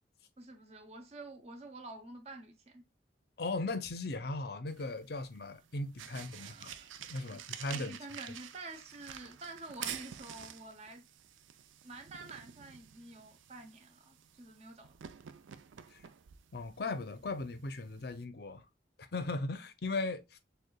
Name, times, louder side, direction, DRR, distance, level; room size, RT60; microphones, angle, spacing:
voice 1, 0.4-2.8 6.4-6.9 7.3-7.4 7.7-11.1 11.8-14.9, right 2 dB, 35° right, 0.6 m, -49 dB
voice 2, 3.4-8.0 15.9-16.0 16.5-18.6 19.0-20.4, left 3 dB, 55° left, 0.6 m, -38 dB
sound 1, 4.7-18.2, right 9 dB, 90° right, 0.4 m, -49 dB
6.5 x 2.3 x 2.2 m
head